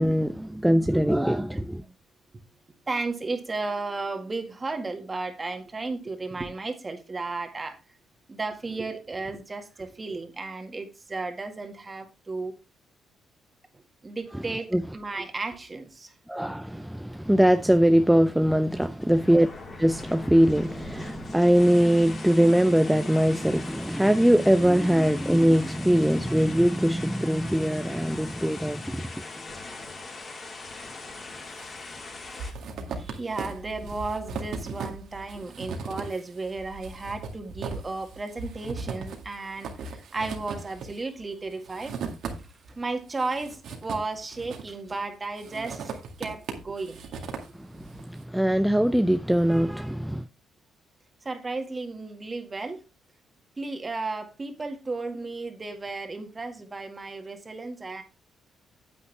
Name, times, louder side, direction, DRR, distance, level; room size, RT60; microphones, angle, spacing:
voice 1, 0.0-1.8 14.7-14.8 16.3-19.5 19.8-29.1 47.6-50.3, equal, 5° right, 0.5 m, -22 dB
voice 2, 2.9-7.8 8.3-12.5 14.0-16.1 31.1-31.2 33.0-41.9 42.7-47.1 51.3-52.8 53.6-58.0, right 3 dB, 25° right, 2.0 m, -34 dB
sound 1, 18.6-32.5, left 3 dB, 40° left, 4.3 m, -41 dB
sound 2, 31.1-31.7 32.0-42.7 43.1-44.9 45.4-48.0, right 4 dB, 75° right, 2.1 m, -38 dB
9.5 x 8.3 x 3.4 m
cardioid pair, 90°, 0 cm